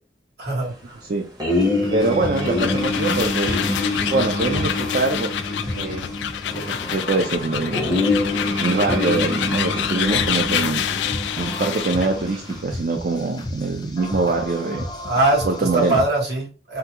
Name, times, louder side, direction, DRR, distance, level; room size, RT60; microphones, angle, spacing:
voice 1, 0.4-1.0 15.1-16.8, right 2 dB, 70° right, 1.4 m, -22 dB
sound 1, 1.4-12.6, left 2 dB, 20° right, 0.8 m, -26 dB
sound 2, 1.5-16.0, left 1 dB, 25° left, 0.5 m, -35 dB
voice 2, 1.9-3.6 4.1-5.3 5.7-6.1 6.7-8.0 8.3-10.8 11.4-14.8 15.4-16.0, right 3 dB, 50° right, 0.4 m, -24 dB
sound 3, 2.1-12.2, left 9 dB, 85° left, 0.3 m, -27 dB
3.6 x 2.2 x 2.8 m
head